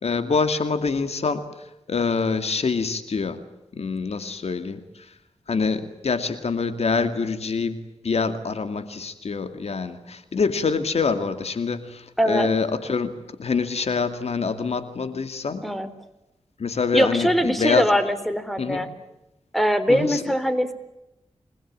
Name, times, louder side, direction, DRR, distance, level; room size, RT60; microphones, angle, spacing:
voice 1, 0.0-3.4 3.7-5.1 5.5-13.1 13.4-15.7 16.6-17.9 18.6-18.8 19.9-20.2, left 4 dB, 70° left, 9 dB, 2.3 m, -25 dB
voice 2, 12.2-12.5 15.6-15.9 16.9-18.9 19.5-20.7, equal, ahead, 11 dB, 3.6 m, -22 dB
27.5 x 20.5 x 8.8 m, 0.92 s
cardioid pair, 60°, 11 cm